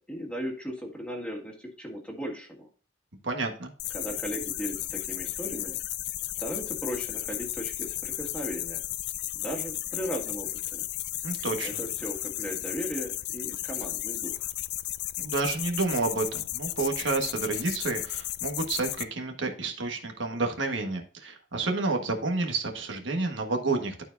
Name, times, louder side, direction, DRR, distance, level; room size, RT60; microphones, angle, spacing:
voice 1, 0.0-2.7 3.9-5.8 6.4-8.8 9.3-10.8 11.6-14.5, equal, 5° left, 1 dB, 1.7 m, -37 dB
voice 2, 3.2-3.7 11.2-11.8 15.2-24.0, right 3 dB, 65° right, 3 dB, 1.4 m, -30 dB
sound 1, 3.8-19.0, left 15 dB, 55° left, 0.4 m, -34 dB
12.0 x 4.6 x 2.6 m, 0.40 s
head